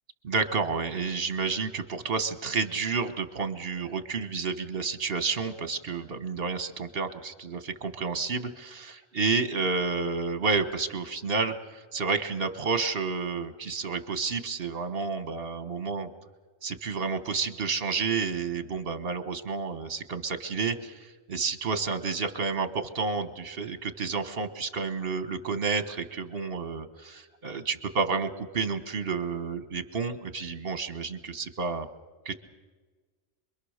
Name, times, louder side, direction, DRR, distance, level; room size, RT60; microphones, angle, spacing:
voice 1, 0.2-16.1 16.6-31.9 32.2-32.3, right 4 dB, 55° right, 9 dB, 1.6 m, -30 dB
27.0 x 22.5 x 6.6 m, 1.4 s
omnidirectional pair, 1.2 m